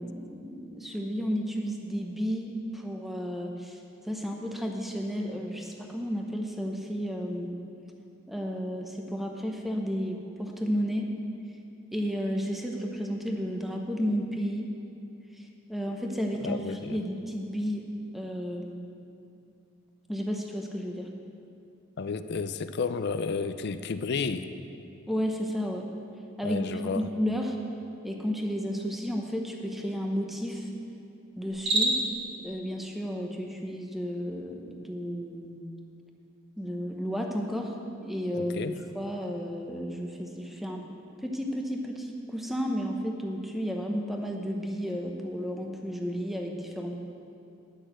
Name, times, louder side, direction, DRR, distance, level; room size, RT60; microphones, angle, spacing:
voice 1, 0.0-3.8 4.0-7.5 8.3-11.1 11.9-14.7 15.4-17.8 18.1-18.8 20.1-21.1 25.1-25.9 26.4-27.6 28.0-30.7 31.4-32.0 32.4-35.7 36.6-40.9 41.2-47.0, equal, ahead, 1 dB, 0.9 m, -32 dB
voice 2, 16.4-17.0 22.0-24.5 26.4-27.0 38.3-38.7, left 5 dB, 55° left, 11 dB, 0.4 m, -32 dB
Cricket, 31.5-32.2, right 2 dB, 60° right, 1.5 m, -26 dB
10.0 x 6.3 x 7.6 m, 2.6 s
head